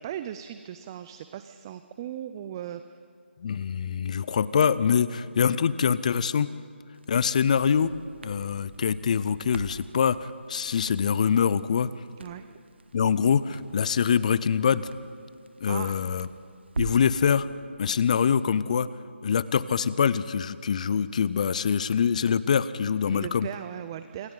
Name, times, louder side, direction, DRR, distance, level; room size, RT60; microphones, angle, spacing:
voice 1, 0.0-2.8 12.2-12.5 15.7-16.0 23.1-24.3, right 10 dB, 20° right, 11 dB, 0.5 m, -37 dB
voice 2, 3.4-6.5 7.1-7.9 8.2-11.9 12.9-14.9 15.6-16.3 16.8-17.5 17.8-18.9 19.2-23.5, left 7 dB, 35° left, 17 dB, 0.6 m, -24 dB
Crackle, 6.9-17.2, right 3 dB, 65° right, 1.3 m, -43 dB
27.0 x 24.0 x 4.0 m, 2.4 s
figure-of-eight pair, 155°, 6 cm